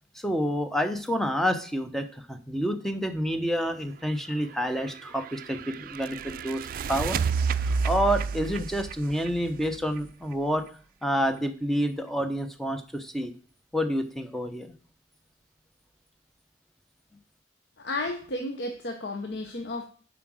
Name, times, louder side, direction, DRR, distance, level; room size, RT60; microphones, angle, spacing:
voice 1, 0.1-6.6 6.9-7.2 7.6-10.6 11.0-13.3 13.7-14.7, equal, ahead, 7 dB, 0.8 m, -28 dB
sound 1, 4.6-10.3, right 5 dB, 50° right, 0.3 m, -31 dB
voice 2, 17.8-19.9, left 2 dB, 75° left, 4 dB, 0.9 m, -33 dB
7.5 x 4.9 x 6.2 m, 0.42 s
head